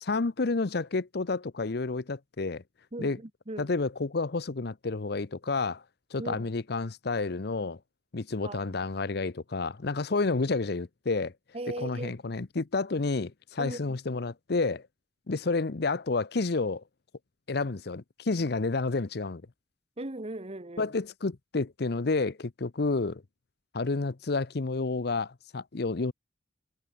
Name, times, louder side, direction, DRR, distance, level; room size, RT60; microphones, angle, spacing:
voice 1, 0.0-2.6 3.0-3.2 3.6-5.8 6.1-7.8 8.1-11.3 11.8-14.8 15.3-16.8 17.5-19.4 20.8-23.2 23.7-26.1, left 3 dB, 60° left, 0.8 m, -30 dB
voice 2, 2.9-3.7 6.2-6.5 8.4-8.6 11.5-12.1 13.6-14.0 20.0-20.9, right 2 dB, 35° right, 1.4 m, -38 dB
head